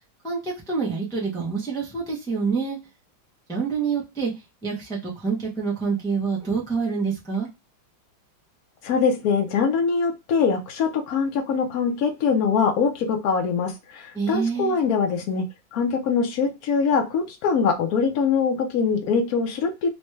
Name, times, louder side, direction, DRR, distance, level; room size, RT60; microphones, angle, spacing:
voice 1, 0.2-2.8 3.5-4.3 4.6-7.5 14.1-14.8, right 5 dB, 5° left, -5 dB, 0.3 m, -26 dB
voice 2, 8.8-15.4 15.7-19.9, left 5 dB, 65° left, 5 dB, 1.0 m, -23 dB
4.2 x 2.2 x 3.2 m, 0.26 s
omnidirectional pair, 2.2 m